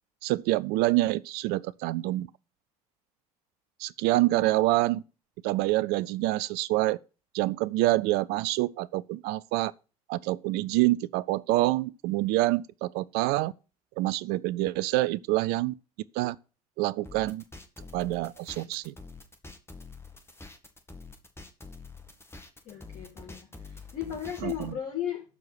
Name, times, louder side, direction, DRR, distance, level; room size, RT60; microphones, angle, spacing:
voice 1, 0.2-2.3 3.8-5.0 5.4-7.0 7.3-9.7 10.1-13.5 14.0-15.7 16.1-16.4 16.8-17.4 17.9-18.9 24.4-24.7, right 18 dB, 55° right, 0.5 m, -26 dB
sound 1, 17.0-24.7, left 3 dB, 10° left, 1.8 m, -46 dB
voice 2, 22.6-25.2, left 10 dB, 45° left, 4.2 m, -36 dB
12.5 x 4.7 x 5.8 m
figure-of-eight pair, 60°, 20 cm